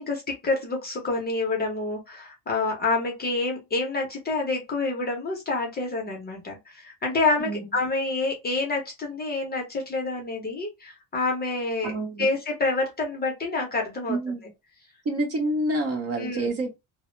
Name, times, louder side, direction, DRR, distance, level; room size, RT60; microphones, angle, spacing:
voice 1, 0.0-11.9 12.2-14.2 16.2-16.5, left 3 dB, 25° left, 0.6 m, -28 dB
voice 2, 11.8-12.3 14.1-14.4 15.0-16.7, right 2 dB, 35° right, 0.8 m, -27 dB
2.0 x 2.0 x 3.1 m
cardioid pair, 150°, 42 cm